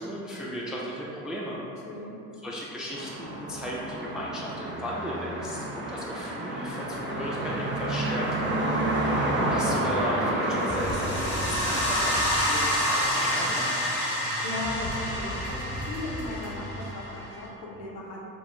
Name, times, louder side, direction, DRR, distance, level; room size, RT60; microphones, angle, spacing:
voice 1, 0.0-1.6 2.4-8.2 9.5-13.7, equal, ahead, -5 dB, 0.5 m, -35 dB
voice 2, 1.8-2.1 8.4-8.9 14.1-18.2, left 2 dB, 55° left, -4 dB, 1.1 m, -37 dB
sound 1, 2.9-13.1, right 1 dB, 25° right, 0.9 m, -30 dB
sound 2, 6.7-16.9, equal, 90° right, 1.1 m, -39 dB
sound 3, 10.5-17.4, equal, 75° left, 1.5 m, -29 dB
5.6 x 2.4 x 3.1 m, 2.8 s
figure-of-eight pair, 60°, 45 cm